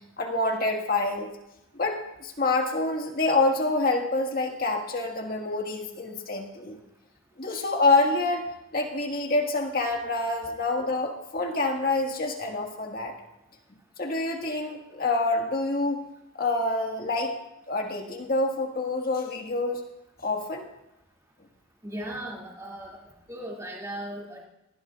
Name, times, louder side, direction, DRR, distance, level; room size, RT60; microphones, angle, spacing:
voice 1, 0.2-1.3 1.7-6.8 7.4-8.5 8.7-13.1 14.0-16.1 16.4-17.4 17.7-19.8 20.2-20.7, left 2 dB, 45° left, 2 dB, 1.8 m, -27 dB
voice 2, 21.8-23.0 23.3-24.5, right 1 dB, 15° right, -3 dB, 2.5 m, -37 dB
19.0 x 16.0 x 2.5 m, 0.89 s
head